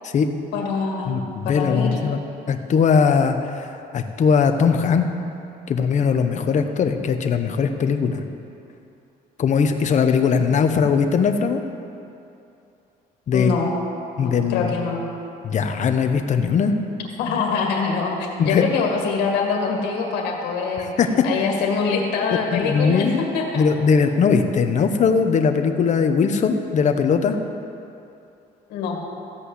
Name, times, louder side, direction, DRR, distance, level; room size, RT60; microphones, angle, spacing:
voice 1, 0.5-2.0 13.3-13.7 14.2-15.0 17.2-20.9 21.2-23.1 23.3-23.6 28.7-29.0, left 5 dB, 85° left, 1 dB, 2.0 m, -24 dB
voice 2, 1.1-2.2 2.5-5.1 5.7-8.2 9.4-11.6 13.3-13.5 14.2-14.7 15.4-16.7 18.4-18.6 21.0-21.1 22.5-23.2 23.5-27.4, left 6 dB, 45° left, 7 dB, 1.0 m, -20 dB
14.5 x 5.5 x 8.3 m, 2.7 s
cardioid pair, 110°, 17 cm